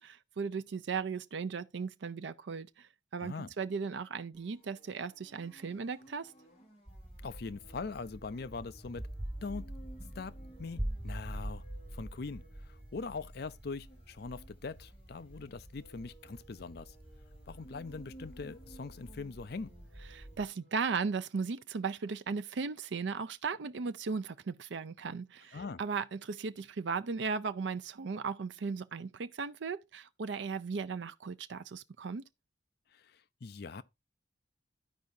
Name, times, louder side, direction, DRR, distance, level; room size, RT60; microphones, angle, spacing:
voice 1, 0.0-6.3 20.1-32.2, right 5 dB, 75° right, 0.5 m, -37 dB
voice 2, 3.2-3.5 7.2-9.1 9.4-9.7 10.2-11.6 11.9-17.0 17.5-19.7 25.5-25.8 32.9-33.8, left 4 dB, 60° left, 0.5 m, -42 dB
sound 1, 4.3-20.9, right 1 dB, 35° left, 3.0 m, -59 dB
sound 2, 6.9-20.5, right 1 dB, 10° right, 0.3 m, -45 dB
13.5 x 4.7 x 2.6 m
head